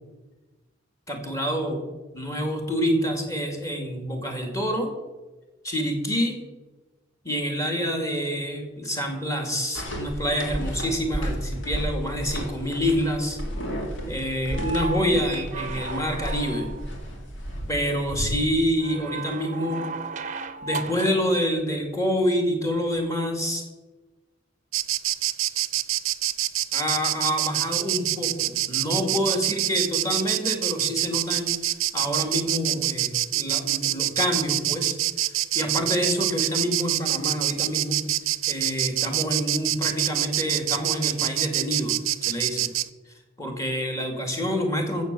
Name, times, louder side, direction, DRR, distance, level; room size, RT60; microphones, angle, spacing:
voice 1, 1.1-1.8 2.1-4.9 5.6-6.4 7.2-13.4 14.1-16.7 17.7-19.8 20.6-23.6 26.7-31.5 31.9-35.0 35.5-38.0 38.5-42.0 42.2-42.7 43.4-45.0, equal, 15° left, 3 dB, 2.3 m, -27 dB
sound 1, 9.7-18.3, equal, 65° left, 2.8 m, -33 dB
sound 2, 14.4-17.0 18.8-21.3 22.9-23.0, right 4 dB, 40° right, 0.7 m, -35 dB
Insect, 24.7-42.9, right 15 dB, 90° right, 0.6 m, -26 dB
14.5 x 7.2 x 6.8 m, 1.2 s
head